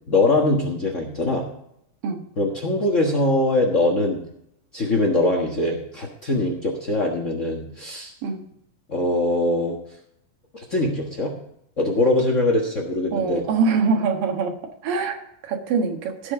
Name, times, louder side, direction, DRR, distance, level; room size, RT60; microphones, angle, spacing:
voice 1, 0.1-1.5 2.4-4.2 4.7-8.1 8.9-9.8 10.5-11.3 11.8-13.4, left 2 dB, 60° left, 1 dB, 0.7 m, -22 dB
voice 2, 13.1-14.6 14.8-16.3, right 5 dB, 80° right, 3 dB, 3.2 m, -24 dB
17.0 x 5.8 x 4.8 m, 0.74 s
omnidirectional pair, 3.9 m